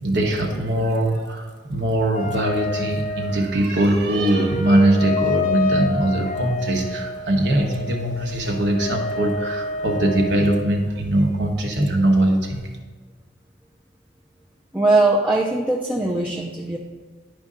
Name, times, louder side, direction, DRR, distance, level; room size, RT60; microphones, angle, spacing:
voice 1, 0.0-12.6, right 1 dB, 60° right, 2 dB, 1.1 m, -21 dB
sound 1, 2.1-10.6, left 3 dB, 45° left, 0.6 m, -28 dB
voice 2, 14.7-16.8, right 2 dB, 10° right, -2 dB, 0.5 m, -20 dB
10.0 x 5.3 x 3.7 m, 1.4 s
head